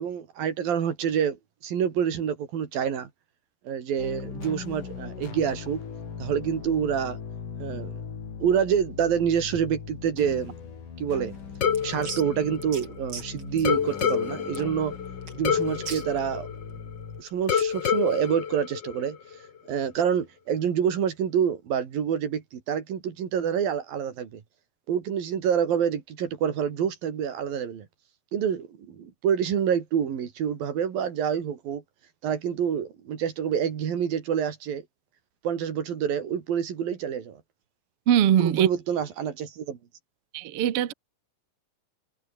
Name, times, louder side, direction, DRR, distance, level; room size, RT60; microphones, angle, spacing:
voice 1, 0.0-3.1 3.6-5.8 6.2-7.2 7.6-8.0 8.4-10.6 11.0-11.3 11.8-15.0 15.3-16.5 17.2-19.2 19.7-24.4 24.9-27.9 28.3-31.8 32.2-34.8 35.4-37.4 38.4-39.8, right 8 dB, 80° right, 4.6 m, -27 dB
sound 1, 4.0-17.2, left 6 dB, 65° left, 5.2 m, -39 dB
sound 2, 11.3-17.8, right 5 dB, 35° right, 3.8 m, -43 dB
sound 3, 11.6-13.2 13.6-17.0 17.5-19.4, left 7 dB, 50° left, 1.5 m, -28 dB
voice 2, 38.1-38.7 40.3-40.9, right 10 dB, 55° right, 1.8 m, -21 dB
omnidirectional pair, 4.1 m